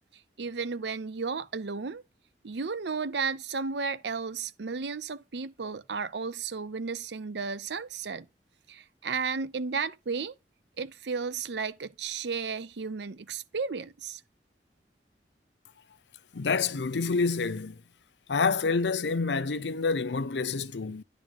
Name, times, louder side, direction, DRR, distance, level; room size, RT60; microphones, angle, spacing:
voice 1, 0.4-2.0 2.4-8.3 8.7-10.3 10.8-14.2, right 5 dB, 75° right, 0.6 m, -33 dB
voice 2, 16.3-17.8 18.3-21.0, left 4 dB, 85° left, 0.7 m, -28 dB
10.5 x 3.7 x 5.3 m
head